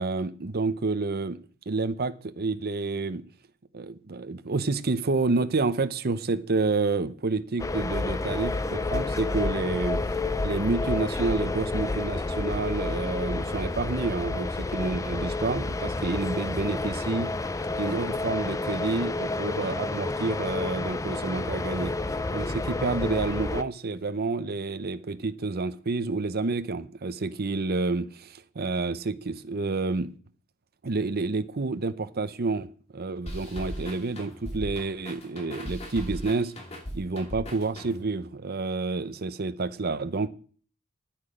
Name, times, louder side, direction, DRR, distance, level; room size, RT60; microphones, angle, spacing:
voice 1, 0.0-1.4 1.7-3.3 3.7-10.0 10.4-17.3 17.8-21.9 22.3-30.1 30.8-36.5 36.9-40.3, right 3 dB, 50° right, 0.7 m, -29 dB
sound 1, 7.6-23.6, left 3 dB, 15° left, 0.4 m, -30 dB
sound 2, 33.3-38.2, equal, 30° left, 2.4 m, -38 dB
11.0 x 8.8 x 5.1 m
head